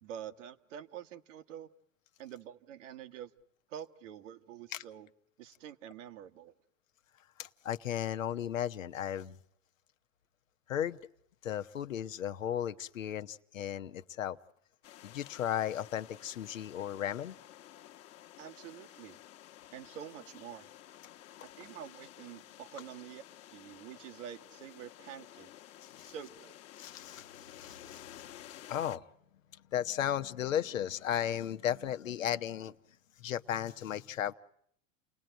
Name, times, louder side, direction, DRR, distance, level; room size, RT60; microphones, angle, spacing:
voice 1, 0.0-1.7 2.2-3.3 3.7-5.1 5.4-6.5 18.4-19.2 19.7-20.7 21.6-25.5 26.0-26.6, right 9 dB, 70° right, 8 dB, 1.5 m, -47 dB
voice 2, 7.4-9.4 10.7-11.0 11.4-14.4 15.0-17.4 25.9-26.1 26.8-27.2 27.5-28.2 28.7-29.0 29.7-32.7 33.2-34.3, left 10 dB, 85° left, 9 dB, 1.0 m, -35 dB
sound 1, 14.8-29.0, left 12 dB, 40° left, 1.2 m, -53 dB
29.5 x 18.5 x 9.1 m, 0.71 s
hypercardioid pair, 95°, 38 cm